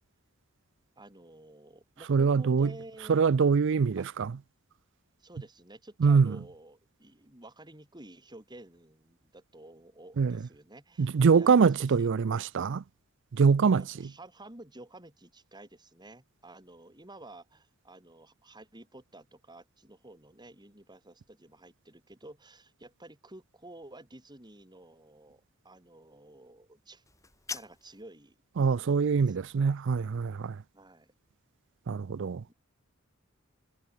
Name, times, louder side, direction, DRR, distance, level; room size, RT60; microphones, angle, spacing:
voice 1, 1.0-3.2 4.0-4.1 5.2-12.1 13.7-27.0 27.5-29.4 30.7-31.1 32.5-32.6, right 1 dB, 20° right, 4.7 m, -51 dB
voice 2, 2.1-2.7 3.1-4.3 6.0-6.4 10.2-10.4 11.0-12.8 13.3-13.8 28.6-30.6 31.9-32.4, right 5 dB, 60° right, 0.4 m, -24 dB
sound 1, 27.0-28.1, left 4 dB, 15° left, 2.4 m, -42 dB
head